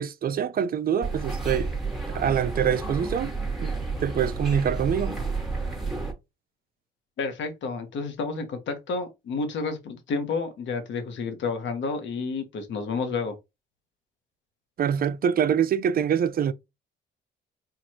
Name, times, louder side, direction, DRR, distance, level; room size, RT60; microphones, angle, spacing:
voice 1, 0.0-1.7 2.1-3.3 3.6-3.7 4.0-5.2 14.8-16.5, right 8 dB, 50° right, 0.5 m, -25 dB
sound 1, 1.0-6.1, right 3 dB, ahead, 1.5 m, -30 dB
voice 2, 7.2-13.3, left 4 dB, 70° left, 1.1 m, -30 dB
4.6 x 2.5 x 2.8 m
cardioid pair, 90°, 20 cm